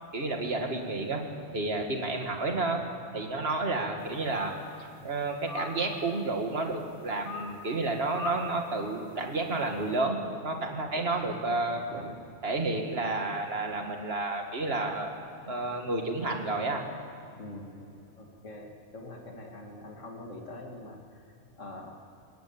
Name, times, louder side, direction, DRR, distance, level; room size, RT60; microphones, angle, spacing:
voice 1, 0.1-1.2 1.5-2.8 3.1-4.5 5.0-12.1 12.4-15.1 15.5-16.8, right 2 dB, 55° right, 3 dB, 2.3 m, -31 dB
sound 1, 4.0-4.9 5.3-6.3 7.2-7.7 8.1-8.6 9.0-9.3, left 4 dB, 70° left, 2.9 m, -40 dB
voice 2, 11.7-12.1 12.6-12.7 17.4-22.0, left 1 dB, 90° left, 0 dB, 2.5 m, -45 dB
22.0 x 18.5 x 8.8 m, 2.5 s
omnidirectional pair, 1.2 m